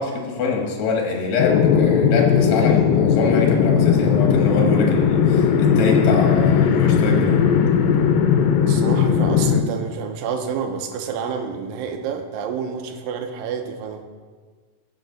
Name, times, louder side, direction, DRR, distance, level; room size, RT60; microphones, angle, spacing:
voice 1, 0.0-7.4, left 4 dB, 60° left, 0 dB, 2.6 m, -24 dB
sound 1, 1.4-9.6, left 7 dB, 90° left, 2.4 m, -17 dB
voice 2, 8.7-14.0, right 6 dB, 80° right, 5 dB, 2.5 m, -29 dB
15.5 x 5.9 x 4.0 m, 1.5 s
omnidirectional pair, 4.0 m